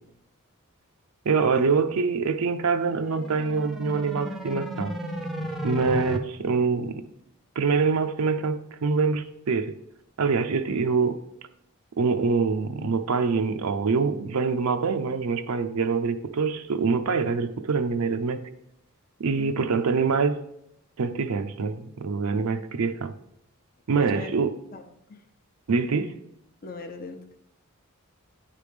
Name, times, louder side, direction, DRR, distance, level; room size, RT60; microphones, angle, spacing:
voice 1, 1.3-4.9 5.6-7.0 7.6-9.7 10.2-11.2 12.0-18.4 19.2-20.4 21.0-23.1 23.9-24.5 25.7-26.1, right 4 dB, 75° right, 8 dB, 0.5 m, -25 dB
sound 1, 2.8-6.2, right 1 dB, ahead, 0.6 m, -34 dB
voice 2, 23.9-24.3 24.7-25.2 26.6-27.4, left 3 dB, 45° left, 6 dB, 0.7 m, -39 dB
9.8 x 3.4 x 5.0 m, 0.79 s
head